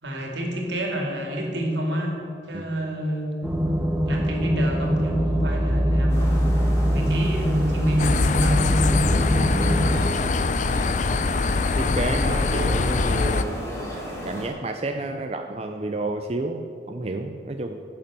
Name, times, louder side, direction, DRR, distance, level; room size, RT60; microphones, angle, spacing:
voice 1, 0.0-3.3 4.1-6.5 6.9-8.7, right 1 dB, 75° right, 1 dB, 2.5 m, -29 dB
sound 1, 3.4-10.0, equal, 10° right, 0.9 m, -22 dB
sound 2, 6.1-14.5, equal, 15° left, 2.3 m, -36 dB
sound 3, 8.0-13.4, left 3 dB, 40° left, 0.4 m, -23 dB
voice 2, 9.0-9.4 11.8-17.8, right 2 dB, 35° right, 5 dB, 0.5 m, -31 dB
14.0 x 6.8 x 7.6 m, 2.6 s
head